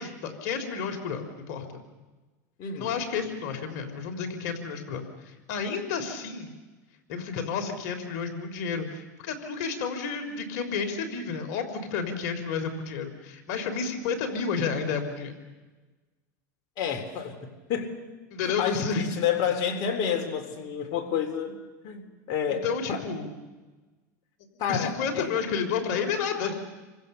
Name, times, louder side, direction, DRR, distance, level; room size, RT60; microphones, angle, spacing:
voice 1, 0.0-1.7 2.8-6.5 7.1-15.4 18.3-19.1 22.6-23.3 24.7-26.6, left 5 dB, 65° left, 5 dB, 3.5 m, -31 dB
voice 2, 2.6-3.0 16.8-18.0 18.4-21.6 21.8-23.0 24.6-25.3, left 8 dB, 50° left, 5 dB, 3.6 m, -30 dB
29.0 x 24.5 x 6.8 m, 1.2 s
supercardioid pair, 110°, 10 cm